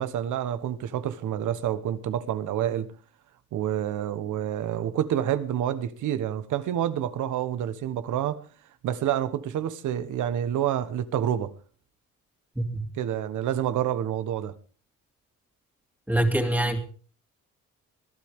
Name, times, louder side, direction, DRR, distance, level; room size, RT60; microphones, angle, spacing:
voice 1, 0.0-2.9 3.5-8.4 8.8-11.5 13.0-14.5, right 10 dB, 80° right, 1.3 m, -28 dB
voice 2, 12.6-12.9 16.1-16.8, right 1 dB, 5° right, 2.7 m, -24 dB
21.5 x 12.0 x 3.7 m
cardioid pair, 90°, 30 cm